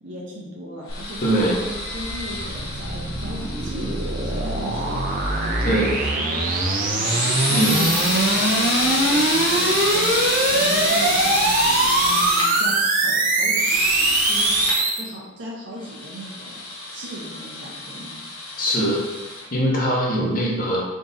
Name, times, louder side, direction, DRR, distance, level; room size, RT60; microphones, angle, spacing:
voice 1, 0.0-5.0 5.5-7.2 7.6-10.1 10.5-14.6 15.0-18.2, equal, 60° right, -4 dB, 0.9 m, -37 dB
sound 1, 0.9-6.2 6.9-12.5 13.5-14.8 15.8-19.5, left 2 dB, 85° left, 0.9 m, -27 dB
sound 2, 0.9-15.0, right 2 dB, 40° right, 0.5 m, -22 dB
voice 2, 1.2-1.6 5.6-5.9 7.5-7.8 18.6-19.0 19.5-20.8, right 1 dB, 40° left, -3 dB, 0.8 m, -21 dB
3.7 x 2.6 x 3.9 m, 1.1 s
head